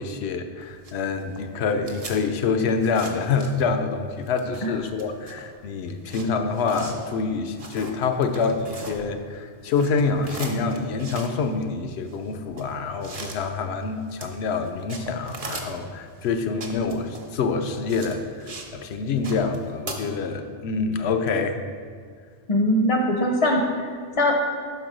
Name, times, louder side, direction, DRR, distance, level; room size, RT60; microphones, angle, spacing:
voice 1, 0.0-21.6, left 4 dB, 85° left, 7 dB, 0.8 m, -26 dB
sound 1, 0.6-3.9 4.2-9.4 9.6-18.7 19.0-19.9, right 3 dB, 40° right, 0.7 m, -40 dB
voice 2, 22.5-23.6 23.9-24.3, left 1 dB, 40° left, 2 dB, 0.5 m, -21 dB
6.0 x 4.6 x 4.9 m, 2.1 s
omnidirectional pair, 1.1 m